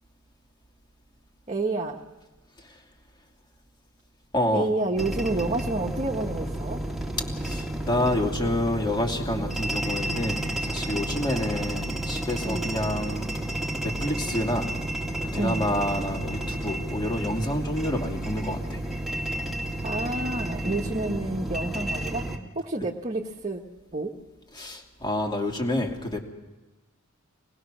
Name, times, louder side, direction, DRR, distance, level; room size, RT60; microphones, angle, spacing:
voice 1, 1.5-2.0 4.5-6.8 9.3-9.6 12.4-12.8 15.3-15.7 19.8-22.3 22.5-23.6 23.9-24.2, right 2 dB, 30° right, -1 dB, 1.4 m, -29 dB
voice 2, 4.3-4.7 7.4-13.3 13.8-14.7 15.2-18.8 24.5-26.2, left 1 dB, 20° left, 2 dB, 2.8 m, -28 dB
sound 1, 5.0-22.4, right 1 dB, ahead, 2.4 m, -31 dB
25.5 x 19.5 x 6.3 m, 1.1 s
head